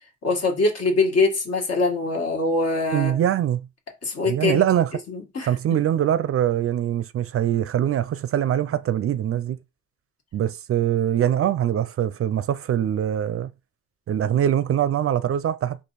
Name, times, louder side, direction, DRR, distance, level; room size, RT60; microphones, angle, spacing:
voice 1, 0.2-3.2 4.0-4.6 5.1-5.5, left 3 dB, 55° left, 1.7 m, -23 dB
voice 2, 2.9-3.7 4.3-4.9 5.4-9.6 10.3-13.5 14.1-15.8, right 10 dB, 50° right, 0.4 m, -23 dB
4.4 x 2.9 x 4.0 m
cardioid pair, 90°, 30 cm